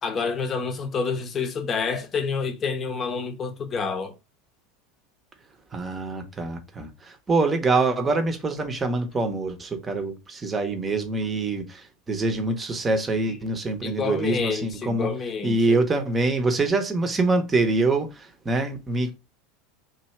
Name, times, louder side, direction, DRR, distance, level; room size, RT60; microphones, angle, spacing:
voice 1, 0.0-4.1 13.3-13.4 13.8-15.8, left 5 dB, 30° left, 0.8 m, -28 dB
voice 2, 5.7-15.1 15.4-19.1, right 3 dB, 20° right, 0.8 m, -25 dB
3.1 x 2.7 x 4.3 m
figure-of-eight pair, 80°, 0 cm